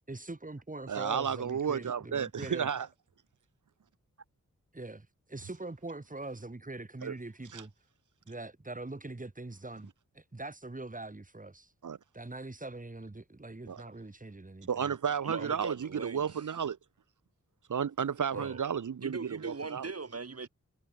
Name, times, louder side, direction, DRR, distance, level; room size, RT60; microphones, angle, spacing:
voice 1, 0.1-2.7 4.7-7.7 8.3-11.7 12.1-15.0 15.4-15.5 18.3-18.6, right 2 dB, 25° right, 3.7 m, -43 dB
voice 2, 0.9-2.9 7.0-7.1 7.5-7.6 11.8-12.0 13.7-13.8 14.7-16.8 17.7-19.9, right 7 dB, 80° right, 1.0 m, -32 dB
voice 3, 15.2-16.5 18.3-18.6 19.0-20.5, right 4 dB, 55° right, 3.2 m, -40 dB
wide cardioid pair, 75°, 30 cm